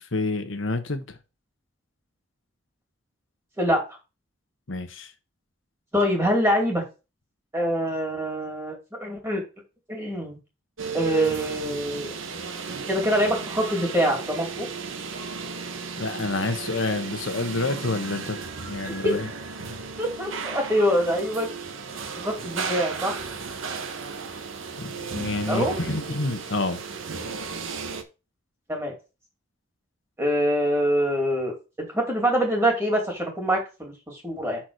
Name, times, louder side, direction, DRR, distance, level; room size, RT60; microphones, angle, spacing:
voice 1, 0.1-1.2 4.7-5.1 16.0-19.3 24.8-26.8, left 3 dB, 70° left, 1.2 m, -28 dB
voice 2, 5.9-6.8 7.5-8.7 9.0-9.4 9.9-10.4 10.9-12.1 12.9-14.7 18.8-19.2 20.0-21.5 22.2-23.3 25.5-25.8 28.7-29.0 30.2-31.5 31.8-34.6, equal, 15° right, 2.6 m, -24 dB
sound 1, 10.8-28.0, right 5 dB, 75° right, 1.1 m, -34 dB
6.2 x 4.3 x 6.3 m
head